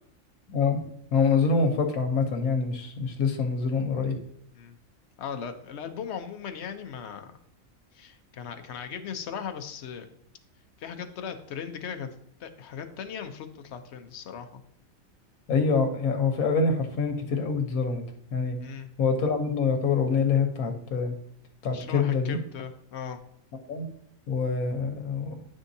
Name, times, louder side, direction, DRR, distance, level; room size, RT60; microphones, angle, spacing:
voice 1, 0.5-0.8 1.1-4.2 15.5-18.0 18.3-18.6 19.0-21.1 21.6-22.4 23.7-23.9 24.3-25.4, left 4 dB, 90° left, 5 dB, 1.3 m, -25 dB
voice 2, 5.2-7.4 7.9-10.1 10.8-12.1 12.4-14.6 18.6-18.9 21.7-23.2, left 7 dB, 60° left, 8 dB, 0.8 m, -38 dB
10.5 x 3.7 x 2.7 m, 0.70 s
omnidirectional pair, 1.5 m